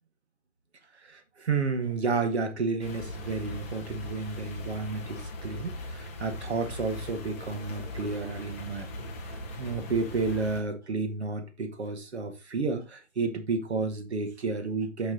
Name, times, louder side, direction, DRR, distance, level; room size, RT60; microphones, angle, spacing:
voice 1, 1.0-15.1, right 4 dB, 60° right, 2.1 m, -31 dB
sound 1, 2.8-10.6, left 1 dB, 10° left, 0.7 m, -39 dB
6.1 x 5.9 x 4.0 m
figure-of-eight pair, 155°, 37 cm